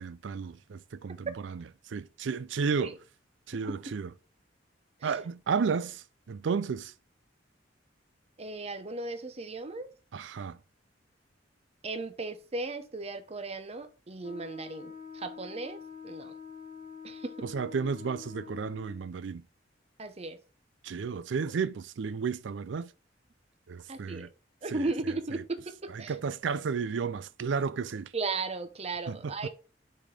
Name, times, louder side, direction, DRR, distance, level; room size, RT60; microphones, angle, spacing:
voice 1, 0.0-3.0 3.5-4.1 5.0-6.9 10.1-10.6 17.4-19.4 20.8-22.9 23.7-24.3 24.7-24.9 25.3-25.4 25.9-28.1 29.1-29.3, right 5 dB, 75° right, 0.4 m, -33 dB
voice 2, 8.4-9.9 11.8-16.3 17.0-17.3 20.0-20.4 23.9-24.3 24.6-26.2 28.1-29.5, right 3 dB, 35° right, 0.8 m, -36 dB
Wind instrument woodwind instrument, 14.2-19.1, left 6 dB, 45° left, 1.0 m, -46 dB
6.2 x 4.2 x 4.8 m
head